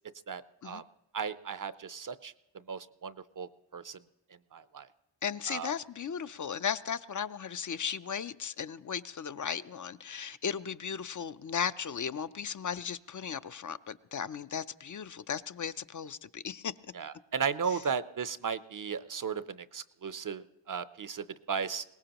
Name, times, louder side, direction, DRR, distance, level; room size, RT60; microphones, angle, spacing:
voice 1, 0.3-0.8 1.1-2.3 2.7-4.0 4.5-4.9 5.5-5.7 17.0-21.8, right 6 dB, 45° right, 0.5 m, -35 dB
voice 2, 5.2-16.7 17.7-17.8, left 7 dB, 45° left, 0.4 m, -36 dB
22.0 x 18.5 x 2.9 m
wide cardioid pair, 90°, 46 cm